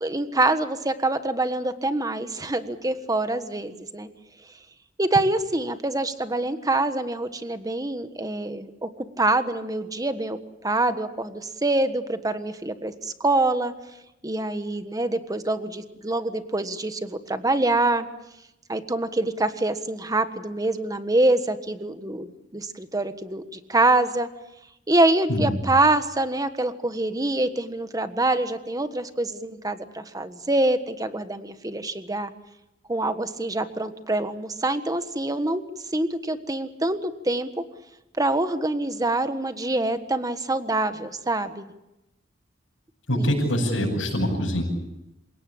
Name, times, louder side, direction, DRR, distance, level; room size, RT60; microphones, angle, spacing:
voice 1, 0.0-4.1 5.0-10.4 10.6-13.7 14.2-18.1 18.7-22.3 22.5-24.3 24.9-32.3 32.9-35.6 35.9-37.5 38.2-41.7 43.1-43.3, right 2 dB, 20° right, 10 dB, 1.4 m, -25 dB
voice 2, 25.3-25.6 43.1-44.6, equal, 90° left, -7 dB, 7.3 m, -24 dB
27.5 x 18.0 x 8.6 m, 0.92 s
head